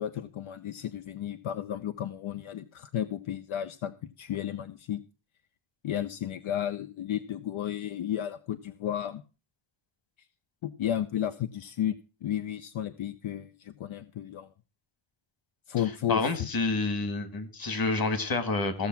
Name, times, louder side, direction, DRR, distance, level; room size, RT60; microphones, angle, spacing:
voice 1, 0.0-5.0 5.8-9.2 10.6-14.5 15.7-16.5, left 10 dB, 70° left, 10 dB, 0.8 m, -33 dB
voice 2, 16.1-18.9, left 3 dB, 45° left, 10 dB, 1.9 m, -28 dB
15.0 x 7.0 x 5.9 m, 0.33 s
wide cardioid pair, 165°, 50 cm